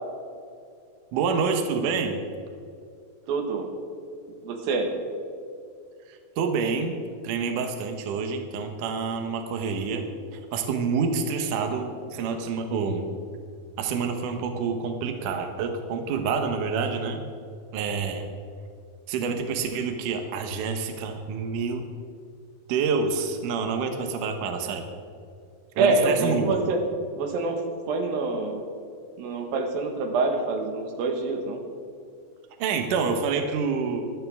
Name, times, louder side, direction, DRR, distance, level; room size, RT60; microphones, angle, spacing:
voice 1, 1.1-2.2 6.1-6.9 7.2-10.1 10.3-13.1 13.8-17.2 17.7-18.3 19.1-21.9 22.7-24.9 25.8-26.5 32.6-34.1, right 5 dB, 70° right, 5 dB, 2.5 m, -27 dB
voice 2, 3.3-3.7 4.4-4.9 25.8-26.8 27.2-27.6 27.9-28.6 29.2-31.6, right 3 dB, 90° right, 3 dB, 3.2 m, -25 dB
19.0 x 12.5 x 3.6 m, 2.4 s
omnidirectional pair, 4.1 m